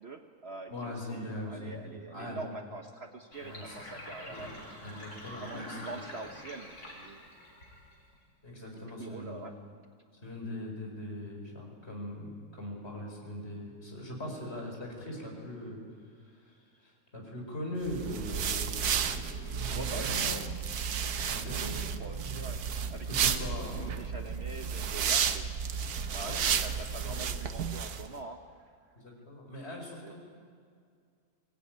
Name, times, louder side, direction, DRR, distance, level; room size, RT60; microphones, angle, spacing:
voice 1, 0.0-4.5 5.3-7.3 8.7-9.5 19.7-20.5 21.2-22.6 22.9-23.4 23.7-25.5 26.1-28.7 30.0-30.1, right 3 dB, 45° right, 5 dB, 1.3 m, -44 dB
voice 2, 0.7-1.7 2.1-2.4 3.4-3.8 4.3-4.5 4.8-6.0 8.4-9.4 10.2-15.8 16.8-20.3 21.3-21.8 23.1-23.8 26.2-26.5 27.0-27.3 29.0-30.1, left 1 dB, 45° left, 0 dB, 5.5 m, -41 dB
Sink (filling or washing), 3.3-8.2, left 1 dB, 90° left, 5.2 m, -46 dB
sound 1, 17.9-28.1, right 7 dB, 80° right, 1.5 m, -32 dB
24.5 x 17.5 x 9.3 m, 2.2 s
omnidirectional pair, 1.6 m